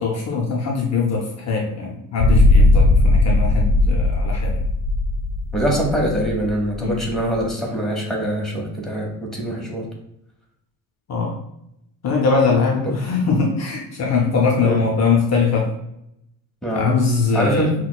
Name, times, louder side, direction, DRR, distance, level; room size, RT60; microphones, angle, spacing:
voice 1, 0.0-4.6 6.8-7.0 11.1-11.3 12.0-15.7 16.7-17.7, left 4 dB, 50° left, 0 dB, 0.6 m, -21 dB
sound 1, 2.2-7.4, left 2 dB, 90° left, 0.6 m, -17 dB
voice 2, 5.5-9.9 12.8-12.9 14.6-14.8 16.6-16.9 17.3-17.7, right 1 dB, ahead, -3 dB, 1.0 m, -23 dB
5.9 x 2.2 x 2.3 m, 0.81 s
cardioid pair, 125°, 35 cm